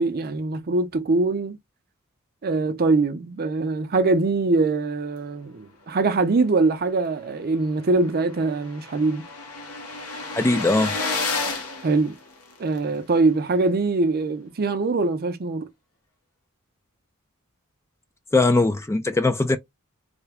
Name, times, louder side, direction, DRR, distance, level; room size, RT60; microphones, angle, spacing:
voice 1, 0.0-1.6 2.4-9.2 11.8-12.2 12.6-15.7, right 3 dB, 45° right, 0.6 m, -23 dB
sound 1, 7.2-7.3 7.6-7.7 7.9-12.8, left 3 dB, 80° left, 0.9 m, -31 dB
voice 2, 10.3-10.9 18.3-19.6, left 2 dB, 10° left, 0.3 m, -20 dB
3.3 x 2.1 x 3.5 m
head